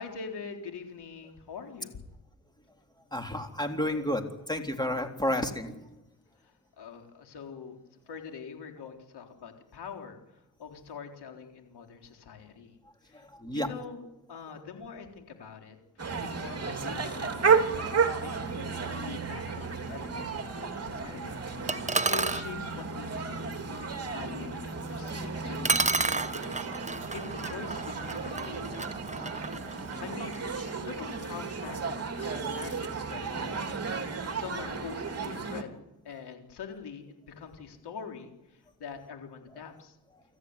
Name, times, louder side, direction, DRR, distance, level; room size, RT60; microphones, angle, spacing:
voice 1, 0.0-2.1 6.4-12.8 13.0-13.2 13.5-15.8 16.2-18.7 19.0-21.4 21.6-23.5 24.1-29.4 29.7-33.8 34.3-35.7 36.0-40.0, left 6 dB, 75° left, 4 dB, 4.0 m, -44 dB
voice 2, 3.1-5.9 13.1-13.7 25.3-25.4, left 1 dB, 10° left, 4 dB, 3.6 m, -31 dB
sound 1, 16.0-35.6, right 5 dB, 35° right, 3.3 m, -33 dB
sound 2, 21.7-22.5 25.1-25.2 25.6-30.5, right 3 dB, 15° right, 1.0 m, -31 dB
25.0 x 14.5 x 9.7 m, 0.98 s
cardioid pair, 70°, 40 cm